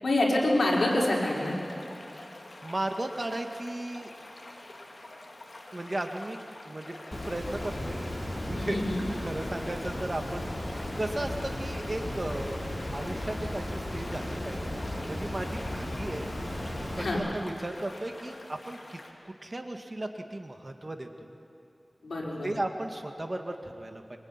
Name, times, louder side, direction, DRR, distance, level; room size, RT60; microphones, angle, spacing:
voice 1, 0.0-1.5 8.5-9.0 17.0-17.2 22.0-22.5, left 1 dB, 90° left, -4 dB, 6.0 m, -26 dB
sound 1, 0.7-19.1, left 2 dB, 60° left, 3.2 m, -47 dB
voice 2, 2.3-4.1 5.7-6.4 6.7-8.0 8.4-8.8 9.2-12.6 12.9-16.3 17.0-19.0 19.2-21.3 22.4-24.2, right 1 dB, 35° right, 4 dB, 2.3 m, -36 dB
Water, 7.1-17.1, left 1 dB, 40° left, 6.5 m, -35 dB
25.0 x 23.5 x 10.0 m, 2.8 s
wide cardioid pair, 65°, 0 cm